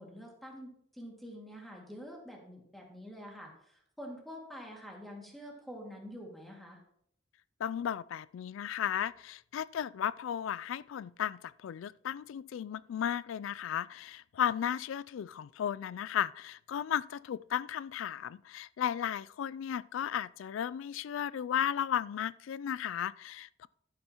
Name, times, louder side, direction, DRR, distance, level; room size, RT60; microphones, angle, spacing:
voice 1, 0.0-6.8, equal, ahead, 2.1 m, -47 dB
voice 2, 7.6-23.7, left 9 dB, 85° left, 0.3 m, -35 dB
11.5 x 9.5 x 3.0 m
head